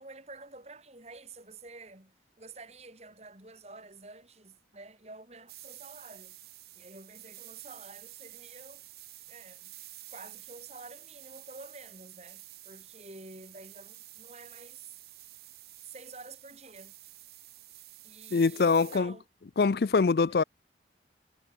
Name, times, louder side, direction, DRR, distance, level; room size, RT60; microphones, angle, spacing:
voice 1, 0.0-6.4 6.8-8.8 9.3-9.7 10.1-15.0 15.8-16.9 18.0-19.2 20.3-20.5, right 3 dB, 35° right, 3.6 m, -49 dB
sound 1, 5.5-19.0, right 16 dB, 60° right, 1.8 m, -50 dB
voice 2, 18.3-19.1 19.6-20.4, left 4 dB, 60° left, 0.4 m, -24 dB
head